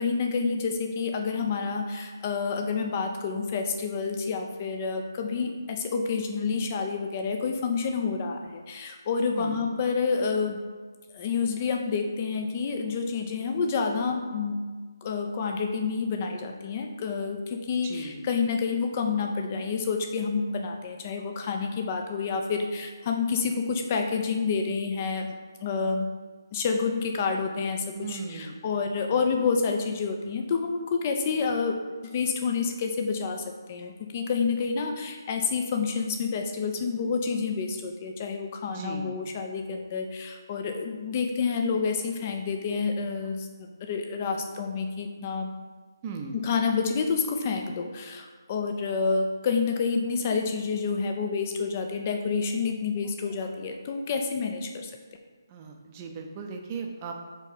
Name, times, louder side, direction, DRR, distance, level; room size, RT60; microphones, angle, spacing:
voice 1, 0.0-10.6 11.1-14.6 15.0-25.4 25.6-26.1 26.5-45.6 46.3-54.9, left 5 dB, 30° left, 4 dB, 0.6 m, -28 dB
voice 2, 9.3-9.7 17.8-18.2 28.0-28.8 38.7-39.2 46.0-46.4 55.5-57.1, right 5 dB, 25° right, 2 dB, 0.6 m, -38 dB
4.5 x 3.9 x 5.5 m, 1.4 s
figure-of-eight pair, 155°, 2 cm